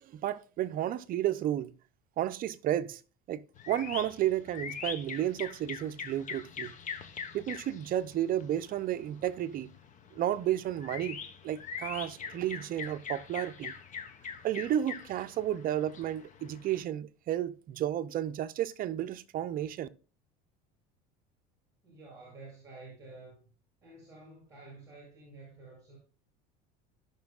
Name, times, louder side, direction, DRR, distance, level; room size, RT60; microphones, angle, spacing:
voice 1, 0.0-1.7 2.2-3.0 3.3-6.7 7.3-9.7 10.1-13.7 14.4-19.9, right 12 dB, 45° right, 0.7 m, -32 dB
sound 1, 3.6-16.8, left 6 dB, 35° left, 1.3 m, -43 dB
voice 2, 21.8-23.4 23.8-26.0, right 3 dB, 15° right, 5.5 m, -50 dB
16.5 x 6.1 x 2.4 m
supercardioid pair, 115°, 21 cm